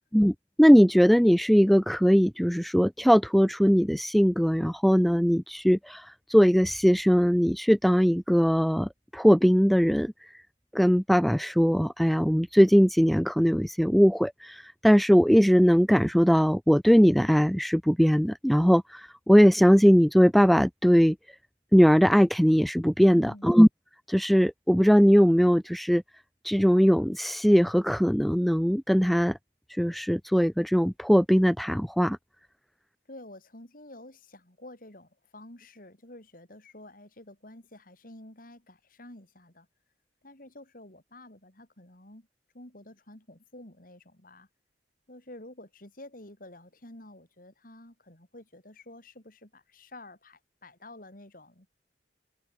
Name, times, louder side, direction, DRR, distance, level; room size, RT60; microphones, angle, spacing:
voice 1, 0.1-10.1 10.7-21.2 21.7-23.7 24.1-26.0 26.4-29.4 29.7-32.2, equal, ahead, 0.4 m, -20 dB
voice 2, 23.1-23.5 33.1-39.7 40.2-42.3 42.5-44.5 45.1-51.7, left 1 dB, 50° left, 4.5 m, -49 dB
head